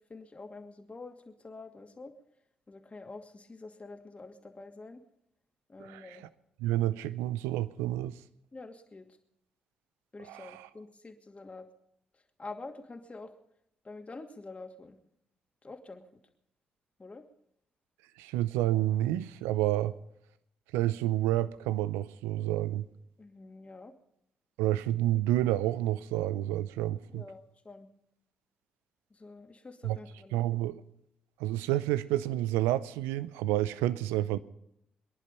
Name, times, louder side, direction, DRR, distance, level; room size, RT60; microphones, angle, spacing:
voice 1, 0.1-2.1 2.7-5.0 5.7-6.2 8.5-9.1 10.1-11.7 12.4-13.3 13.8-15.0 15.6-16.0 17.0-17.2 23.2-23.9 27.1-27.9 29.1-30.4, left 3 dB, 35° left, 2.4 m, -47 dB
voice 2, 5.8-6.3 6.6-8.2 10.2-10.7 18.2-19.9 20.7-22.9 24.6-27.3 29.8-30.0 30.3-30.8 31.4-34.4, right 14 dB, 80° right, 0.6 m, -29 dB
23.5 x 11.0 x 5.4 m
hypercardioid pair, 40°, 4 cm